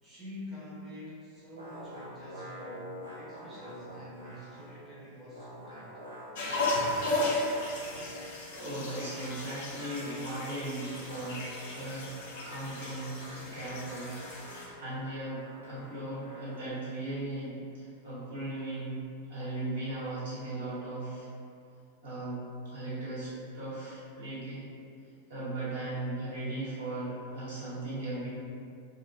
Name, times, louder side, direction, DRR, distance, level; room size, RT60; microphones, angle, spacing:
voice 1, 0.0-6.0 15.8-16.0, left 1 dB, 10° right, -10 dB, 0.8 m, -46 dB
sound 1, 1.6-4.9 5.1-8.4 8.9-16.9, equal, 85° right, 0.6 m, -48 dB
sound 2, 6.3-14.7, left 2 dB, 55° left, 0.5 m, -35 dB
voice 2, 8.4-12.1 12.4-19.0 19.3-21.3 22.0-22.4 22.7-24.6 25.3-28.3, right 2 dB, 65° right, -11 dB, 1.2 m, -37 dB
2.4 x 2.0 x 3.1 m, 2.4 s
figure-of-eight pair, 90°, 0 cm